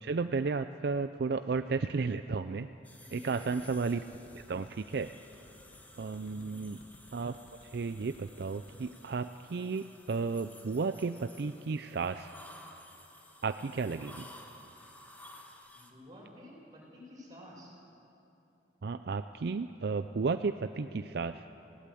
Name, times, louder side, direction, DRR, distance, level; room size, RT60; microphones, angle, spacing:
voice 1, 0.0-2.7 3.1-4.0 4.5-5.1 6.0-6.8 7.1-7.4 7.7-12.3 13.4-14.3 18.8-21.4, right 4 dB, 65° right, 10 dB, 0.5 m, -33 dB
sound 1, 2.8-15.9, left 1 dB, 10° left, 1.5 m, -55 dB
voice 2, 3.0-3.7 6.3-6.7 15.7-17.7, left 1 dB, 25° right, -5 dB, 6.8 m, -51 dB
sound 2, 3.6-8.8, left 1 dB, 65° left, 2.4 m, -57 dB
20.0 x 17.0 x 8.5 m, 3.0 s
head